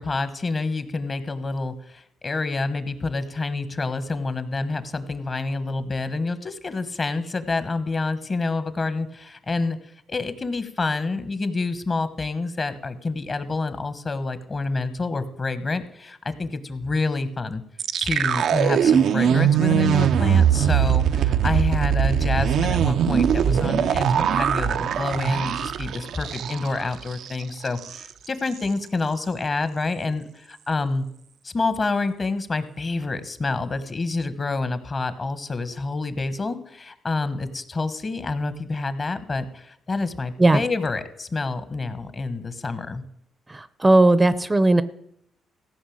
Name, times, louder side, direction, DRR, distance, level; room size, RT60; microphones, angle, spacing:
voice 1, 0.0-9.8 10.1-17.6 18.0-31.0 31.4-43.0, left 3 dB, 40° left, 12 dB, 1.3 m, -28 dB
sound 1, 17.8-26.8 27.1-27.3 27.7-28.0, right 8 dB, 75° right, 0.5 m, -21 dB
voice 2, 43.5-44.8, right 2 dB, 20° right, 15 dB, 0.6 m, -17 dB
15.5 x 5.5 x 8.7 m, 0.74 s
supercardioid pair, 65°, 0 cm